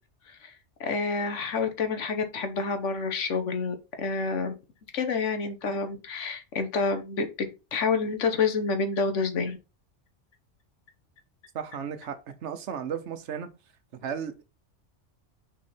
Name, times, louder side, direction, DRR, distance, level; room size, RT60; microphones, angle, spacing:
voice 1, 0.8-4.5 4.9-7.3 7.7-9.6, left 4 dB, 90° left, 1.4 m, -28 dB
voice 2, 11.5-13.5 14.0-14.4, right 7 dB, 75° right, 1.1 m, -34 dB
6.3 x 4.3 x 4.3 m
omnidirectional pair, 1.2 m